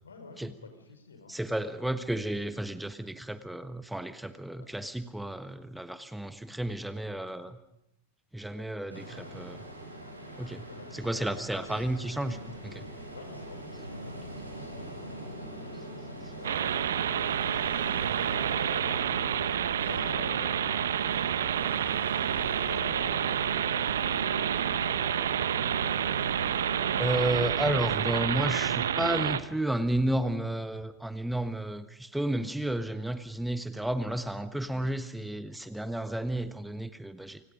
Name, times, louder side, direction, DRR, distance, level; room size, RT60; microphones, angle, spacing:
voice 1, 0.0-1.3 3.4-3.5 4.6-4.7 8.4-9.5 10.7-11.9 12.8-26.2, left 4 dB, 70° left, 7 dB, 5.2 m, -50 dB
voice 2, 1.3-7.6 8.3-9.6 10.4-10.6 10.9-12.9 16.2-16.3 27.0-37.4, right 1 dB, 5° right, 11 dB, 1.3 m, -32 dB
Ocean, 8.9-28.0, right 1 dB, 90° right, 7.4 m, -42 dB
sound 1, 16.4-29.4, right 9 dB, 65° right, 1.2 m, -29 dB
29.5 x 26.0 x 5.3 m, 0.83 s
figure-of-eight pair, 90°, 0 cm